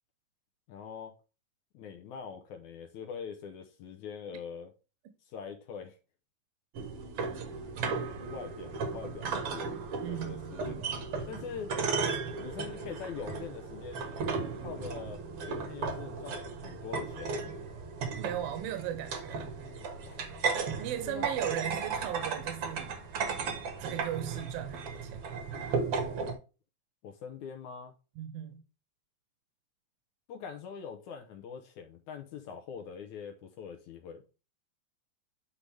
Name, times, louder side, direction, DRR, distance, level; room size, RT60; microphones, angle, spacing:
voice 1, 0.7-1.1 1.7-4.7 5.3-6.0 8.2-9.7 10.1-10.8 11.3-11.7 12.4-14.0 14.6-15.2 15.5-17.5 20.0-20.3 21.0-21.3 27.0-27.9 30.3-34.2, left 7 dB, 70° left, 2.0 m, -43 dB
sound 1, 6.7-26.3, right 4 dB, 55° right, 1.6 m, -35 dB
voice 2, 10.0-10.5 18.2-19.5 20.8-22.9 23.8-25.4 28.2-28.6, right 11 dB, 80° right, 2.6 m, -37 dB
9.8 x 3.9 x 3.3 m
omnidirectional pair, 4.2 m